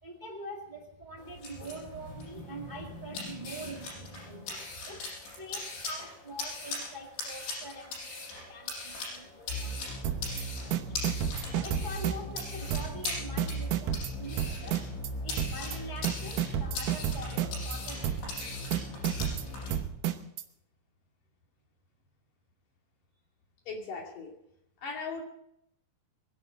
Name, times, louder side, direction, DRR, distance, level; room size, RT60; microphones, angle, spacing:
voice 1, 0.0-11.0 11.5-14.9 15.2-18.6, right 1 dB, 55° right, 0 dB, 0.5 m, -44 dB
sound 1, 1.2-19.7, left 3 dB, 80° left, 8.2 m, -41 dB
sound 2, 9.5-19.8, equal, 20° left, 4.6 m, -39 dB
sound 3, 10.0-10.4 10.7-12.4 12.7-13.1 13.4-15.1 15.4-15.8 16.0-17.8 18.0-18.4 18.7-20.4, right 11 dB, 90° right, 1.8 m, -31 dB
voice 2, 23.7-24.3 24.8-25.2, left 4 dB, 50° left, 1 dB, 3.7 m, -38 dB
23.0 x 11.0 x 5.1 m, 0.76 s
omnidirectional pair, 5.2 m